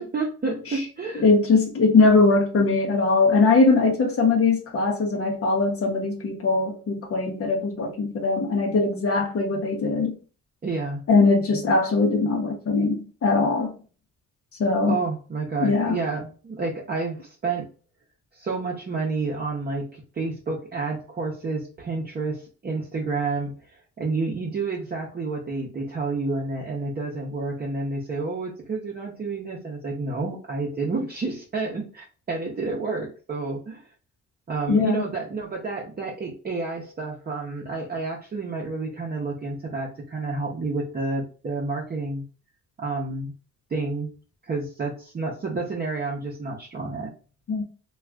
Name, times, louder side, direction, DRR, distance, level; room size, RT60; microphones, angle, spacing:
voice 1, 0.0-1.2 10.6-11.0 14.9-17.7 18.3-33.8 34.5-42.2 42.8-43.3 43.7-44.1 44.4-47.1, right 3 dB, 30° right, 0.7 m, -30 dB
voice 2, 1.1-10.2 11.1-13.7 14.6-15.0 15.6-16.0 34.7-35.0 47.5-47.6, left 3 dB, 50° left, 0.8 m, -21 dB
2.4 x 2.3 x 3.3 m
cardioid pair, 90°, 30 cm